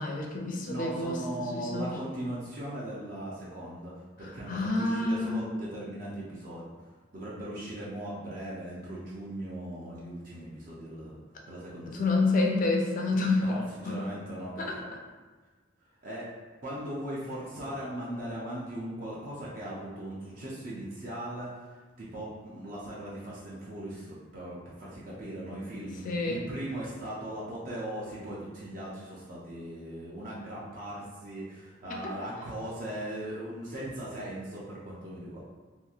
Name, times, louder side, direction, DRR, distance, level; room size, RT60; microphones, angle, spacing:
voice 1, 0.0-1.9 4.2-5.4 11.9-13.4 13.8-14.1 14.6-14.8 26.0-26.4 32.0-32.1, left 2 dB, 45° left, 1 dB, 0.4 m, -28 dB
voice 2, 0.7-3.9 4.2-6.7 7.1-11.2 11.5-12.1 13.4-14.8 16.0-16.3 16.6-35.4, right 1 dB, 45° right, -7 dB, 0.5 m, -39 dB
2.9 x 2.6 x 2.4 m, 1.3 s
head